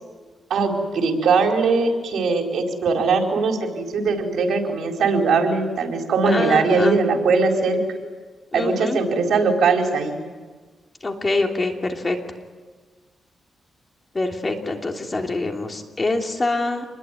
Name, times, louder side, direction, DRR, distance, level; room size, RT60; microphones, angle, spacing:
voice 1, 0.5-7.8 8.5-10.2, right 4 dB, 75° right, 2 dB, 4.6 m, -20 dB
voice 2, 6.3-7.0 8.5-9.0 11.0-12.2 14.1-16.8, left 2 dB, 25° left, 3 dB, 3.1 m, -25 dB
27.5 x 21.5 x 9.4 m, 1.4 s
wide cardioid pair, 130°, 0 cm